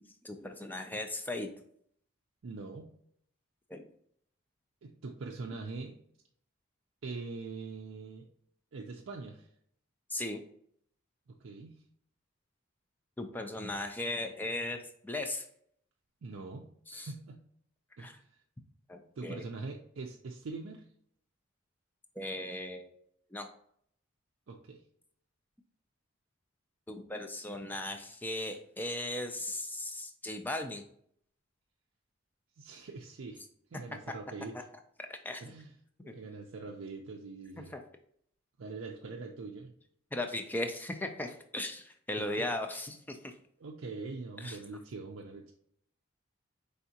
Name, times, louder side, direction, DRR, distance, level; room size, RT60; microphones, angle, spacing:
voice 1, 0.2-1.5 3.7-3.9 10.1-10.4 13.2-15.5 16.9-17.1 18.0-18.2 18.9-19.4 22.2-22.9 23.3-23.5 26.9-30.8 35.1-35.4 36.1-36.2 40.1-43.3 44.4-44.6, left 1 dB, 10° left, 5 dB, 0.4 m, -37 dB
voice 2, 2.4-2.9 4.8-6.0 7.0-8.3 8.7-9.5 11.4-11.8 16.2-17.4 18.0-18.3 19.2-20.8 24.5-24.8 32.6-33.4 33.7-34.6 35.4-35.7 36.0-37.8 38.6-39.7 42.2-42.5 43.6-45.5, right 3 dB, 65° right, 0 dB, 0.4 m, -43 dB
4.7 x 3.5 x 2.8 m, 0.66 s
head